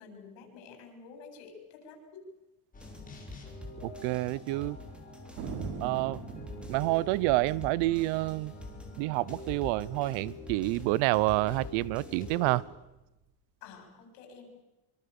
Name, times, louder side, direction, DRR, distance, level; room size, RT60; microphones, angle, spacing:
voice 1, 0.0-2.0 5.7-6.0 13.6-14.6, left 5 dB, 75° left, 4 dB, 7.5 m, -50 dB
sound 1, 2.7-12.6, left 2 dB, 15° left, 5.9 m, -48 dB
sound 2, 2.8-12.6, left 2 dB, ahead, 3.5 m, -47 dB
voice 2, 3.8-4.8 5.8-6.2 6.7-8.5 9.0-12.6, right 19 dB, 70° right, 23 dB, 0.8 m, -28 dB
Thunder, 5.4-10.2 10.4-10.5 10.8-11.3 11.8-13.0, right 6 dB, 90° right, 4.0 m, -44 dB
25.5 x 25.0 x 7.0 m, 0.99 s
cardioid pair, 155°, 47 cm